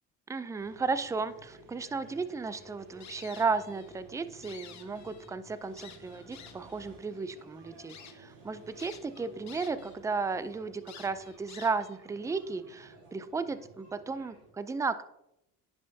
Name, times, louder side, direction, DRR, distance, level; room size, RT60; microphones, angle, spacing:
voice 1, 0.3-15.0, right 4 dB, 10° right, 13 dB, 0.3 m, -34 dB
sound 1, 0.5-14.5, right 2 dB, 90° right, 2.9 m, -54 dB
sound 2, 3.0-3.9 4.3-5.3 5.8-6.8 7.3-7.4 7.9-8.1 8.8-10.0 10.3-10.4 10.9-12.0, left 9 dB, 50° left, 1.0 m, -50 dB
10.0 x 5.7 x 2.7 m, 0.82 s
cardioid pair, 105°, 36 cm